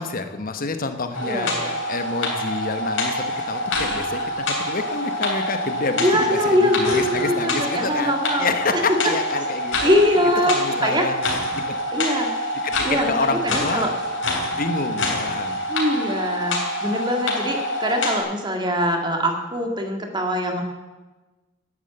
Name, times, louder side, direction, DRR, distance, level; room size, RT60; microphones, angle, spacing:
voice 1, 0.0-11.1 12.6-13.9 14.5-15.6, left 3 dB, 45° left, 8 dB, 1.1 m, -28 dB
FP Funny Machine, 1.1-18.2, left 1 dB, 70° left, 3.4 m, -26 dB
voice 2, 1.2-1.7 5.9-8.8 9.8-10.5 10.8-11.1 11.9-12.3 12.8-13.9 15.7-16.6 16.8-20.6, equal, 25° right, 3 dB, 1.9 m, -22 dB
11.0 x 9.9 x 7.9 m, 1.2 s
head